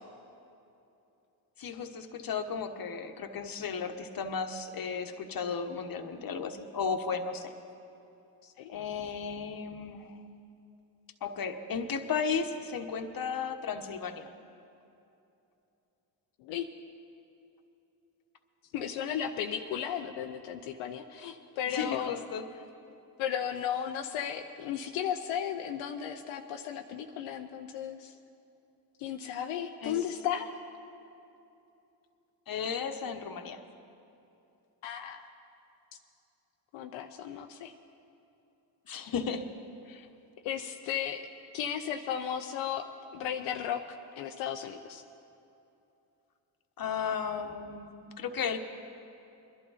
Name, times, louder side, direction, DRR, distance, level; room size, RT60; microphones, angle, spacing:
voice 1, 1.6-7.5 8.7-10.2 11.2-14.3 21.7-22.5 29.8-30.0 32.5-33.6 38.9-39.5 39.9-40.1 46.8-48.6, left 6 dB, 50° left, 7 dB, 1.2 m, -34 dB
voice 2, 18.7-22.2 23.2-28.1 29.0-30.6 34.8-35.2 36.7-37.7 40.4-41.2 41.5-42.8 43.1-45.0, left 9 dB, 85° left, 4 dB, 0.7 m, -35 dB
21.5 x 11.5 x 4.1 m, 2.8 s
supercardioid pair, 60°, 46 cm